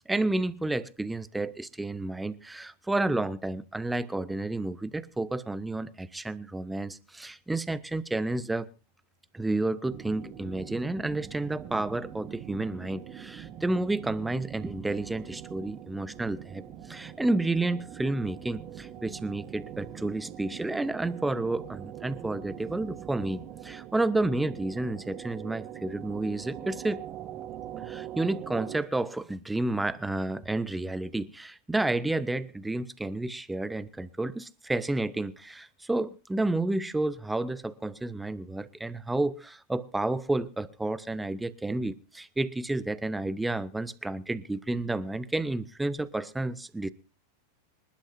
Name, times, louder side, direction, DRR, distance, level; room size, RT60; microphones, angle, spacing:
voice 1, 0.1-8.7 9.3-27.0 27.8-46.9, right 2 dB, 5° right, 0.8 m, -31 dB
sound 1, 9.8-28.8, right 10 dB, 35° right, 1.4 m, -43 dB
26.5 x 11.5 x 2.6 m
figure-of-eight pair, 90°, 0 cm